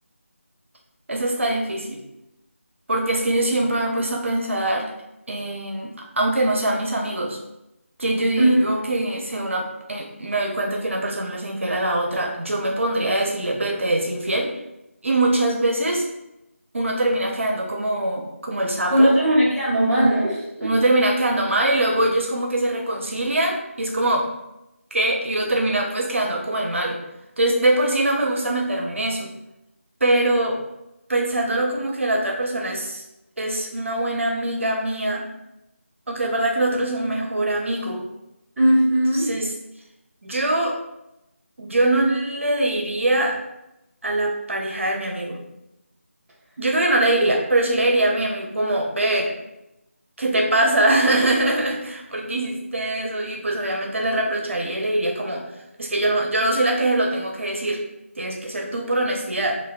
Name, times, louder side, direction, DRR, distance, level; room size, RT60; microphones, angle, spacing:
voice 1, 1.1-2.0 2.9-4.9 5.3-7.4 8.0-14.5 15.0-16.1 16.7-19.1 20.6-24.3 24.9-27.0 27.4-29.3 30.0-30.6 31.1-33.0 33.4-35.3 36.1-38.0 39.1-39.5 40.2-40.8 41.6-43.4 44.0-45.4 46.6-49.3 50.2-55.5 55.8-57.8 58.2-59.6, right 1 dB, 60° right, 0 dB, 0.5 m, -23 dB
voice 2, 18.9-20.7 38.6-39.3, right 1 dB, 5° right, -16 dB, 0.7 m, -18 dB
3.3 x 2.2 x 2.3 m, 0.89 s
figure-of-eight pair, 165°, 8 cm